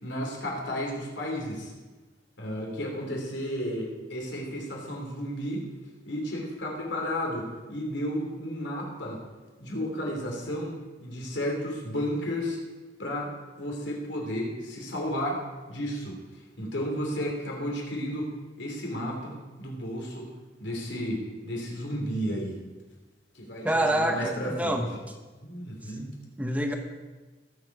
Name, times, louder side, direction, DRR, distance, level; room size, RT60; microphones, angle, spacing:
voice 1, 0.0-1.7 2.4-5.6 6.1-9.2 9.6-10.7 11.0-12.6 13.0-13.3 13.6-15.4 15.7-16.2 16.6-18.3 18.6-20.3 20.6-22.6 23.3-24.8 25.4-26.1, equal, 75° left, -1 dB, 3.0 m, -32 dB
voice 2, 23.6-24.9 26.4-26.8, right 1 dB, 10° right, 4 dB, 1.0 m, -26 dB
20.0 x 7.2 x 4.8 m, 1.2 s
head